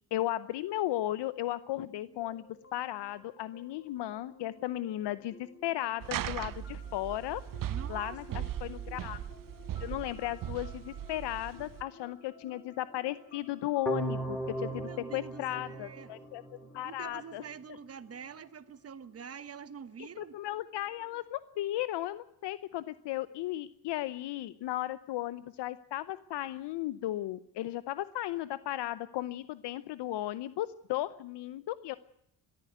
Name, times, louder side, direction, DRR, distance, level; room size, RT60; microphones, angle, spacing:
voice 1, 0.1-2.4 2.7-5.3 5.6-7.4 7.9-9.2 9.8-16.4 16.7-17.4 20.0-32.0, left 14 dB, 70° left, 0.8 m, -35 dB
sound 1, 1.8-21.3, left 3 dB, 30° left, 2.2 m, -56 dB
sound 2, 6.0-11.8, right 11 dB, 50° right, 0.8 m, -38 dB
voice 2, 7.6-8.5 14.7-20.4, right 7 dB, 35° right, 1.2 m, -46 dB
sound 3, 13.9-16.8, right 2 dB, ahead, 2.0 m, -37 dB
21.5 x 14.0 x 9.2 m
cardioid pair, 115°, 43 cm